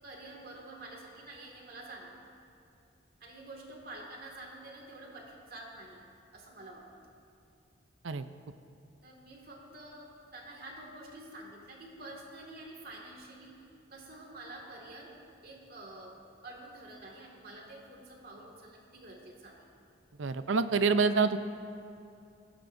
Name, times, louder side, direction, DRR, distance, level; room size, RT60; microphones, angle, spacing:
voice 1, 0.0-2.2 3.2-6.0 6.3-6.9 9.0-19.6, right 2 dB, 50° right, -1 dB, 2.1 m, -48 dB
voice 2, 20.2-21.4, right 4 dB, 75° right, 11 dB, 0.6 m, -26 dB
19.0 x 16.0 x 2.7 m, 2.6 s
head